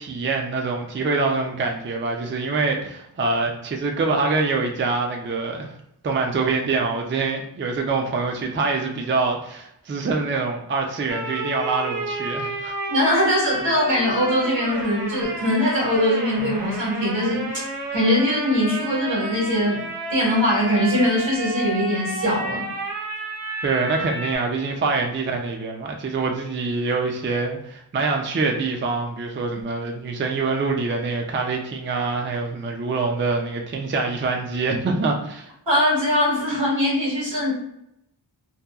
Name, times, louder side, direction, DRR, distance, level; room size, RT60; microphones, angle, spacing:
voice 1, 0.0-5.8 6.0-12.7 23.6-35.5, right 3 dB, 30° right, 2 dB, 0.4 m, -25 dB
sound 1, 11.1-24.4, right 2 dB, 55° right, 0.7 m, -31 dB
voice 2, 12.9-17.6 17.9-19.8 20.1-22.7 35.7-37.5, left 1 dB, 80° right, -6 dB, 1.4 m, -21 dB
2.8 x 2.2 x 2.3 m, 0.79 s
wide cardioid pair, 65°, 44 cm